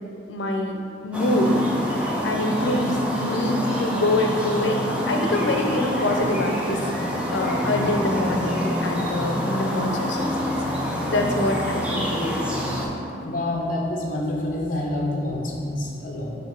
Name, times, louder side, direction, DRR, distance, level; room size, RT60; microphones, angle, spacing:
voice 1, 0.3-0.8 1.0-1.6 2.2-12.6, left 1 dB, 85° left, 3 dB, 0.6 m, -25 dB
Garden Noises, 1.1-12.9, equal, 5° right, 0.6 m, -26 dB
voice 2, 13.2-16.4, left 1 dB, 45° left, -2 dB, 0.9 m, -27 dB
6.1 x 3.1 x 5.2 m, 2.6 s
head